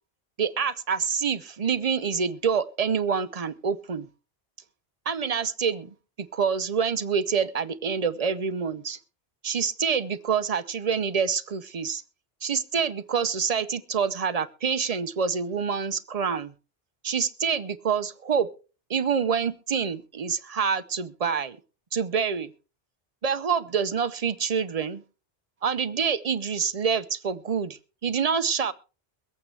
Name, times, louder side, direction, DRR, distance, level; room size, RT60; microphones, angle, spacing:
voice 1, 0.4-4.1 5.1-9.0 9.4-12.0 12.4-16.5 17.0-18.5 18.9-21.6 21.9-22.5 23.2-25.0 25.6-28.7, right 6 dB, 40° right, 13 dB, 0.7 m, -27 dB
23.0 x 8.6 x 3.3 m, 0.35 s
omnidirectional pair, 1.0 m